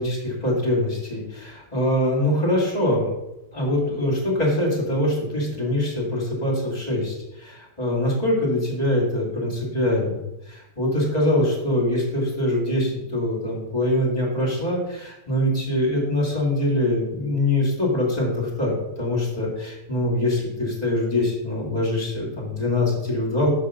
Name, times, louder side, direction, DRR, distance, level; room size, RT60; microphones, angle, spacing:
voice 1, 0.0-3.1 3.5-23.5, left 1 dB, 25° left, -3 dB, 2.5 m, -23 dB
5.6 x 5.5 x 6.3 m, 0.90 s
omnidirectional pair, 1.7 m